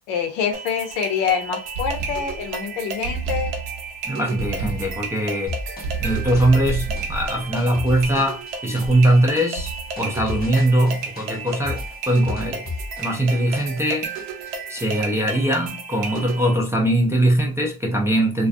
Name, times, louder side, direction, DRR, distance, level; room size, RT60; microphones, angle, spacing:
voice 1, 0.1-3.5, left 7 dB, 80° left, 0.7 m, -25 dB
sound 1, 0.5-16.5, right 4 dB, 90° right, 0.7 m, -33 dB
sound 2, 1.7-2.6 3.0-4.0 4.4-5.2 5.8-8.3 8.8-9.2 9.6-10.1, right 4 dB, 50° right, 0.7 m, -30 dB
voice 2, 4.0-5.5 6.0-9.7 10.0-12.6 13.0-14.1 14.7-18.5, right 1 dB, 5° right, 0.3 m, -21 dB
Trip Hop Dub City Beat, 5.5-13.9 14.2-15.0, left 3 dB, 20° left, 0.8 m, -35 dB
2.3 x 2.2 x 2.5 m
cardioid pair, 110°, 44 cm